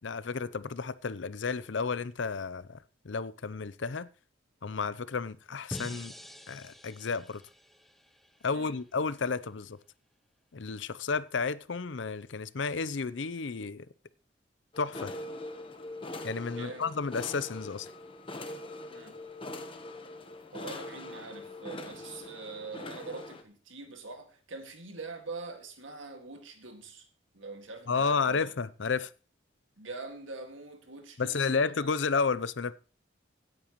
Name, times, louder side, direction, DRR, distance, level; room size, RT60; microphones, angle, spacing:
voice 1, 0.0-2.8 3.0-4.1 4.6-6.1 6.5-7.4 8.4-9.8 10.5-13.9 14.8-15.1 16.2-17.9 27.9-29.1 31.2-32.7, left 5 dB, 75° left, 0.6 m, -32 dB
sound 1, 5.7-8.8, equal, ahead, 0.6 m, -46 dB
sound 2, 14.7-23.4, left 2 dB, 25° left, 1.0 m, -42 dB
voice 2, 16.6-16.9 18.9-19.2 20.5-27.1 27.3-28.5 29.8-31.7, right 3 dB, 85° right, 2.0 m, -43 dB
16.5 x 9.0 x 3.1 m
head